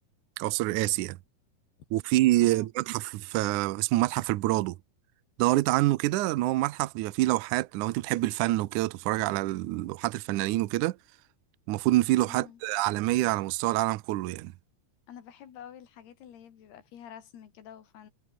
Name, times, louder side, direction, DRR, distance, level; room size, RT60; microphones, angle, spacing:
voice 1, 0.4-1.2 1.9-4.8 5.4-11.0 11.7-14.5, right 18 dB, 85° right, 1.8 m, -26 dB
voice 2, 12.3-12.6 15.1-18.1, left 9 dB, 80° left, 4.7 m, -48 dB
omnidirectional pair, 4.6 m